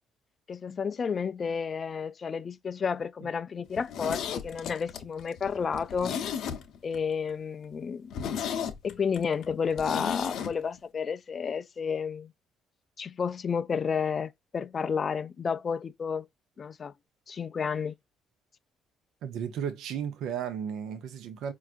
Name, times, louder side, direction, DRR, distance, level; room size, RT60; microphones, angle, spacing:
voice 1, 0.5-6.2 6.8-8.1 8.8-12.3 13.0-16.3 16.6-16.9 17.3-18.0, left 6 dB, 35° left, 0.3 m, -31 dB
Zipper (clothing), 3.7-7.0 7.3-7.4 7.7-7.8 8.1-10.5 10.8-10.9, left 8 dB, 70° left, 0.7 m, -34 dB
voice 2, 19.2-21.5, right 8 dB, 75° right, 0.6 m, -34 dB
4.6 x 2.4 x 2.5 m
cardioid pair, 110°, 0 cm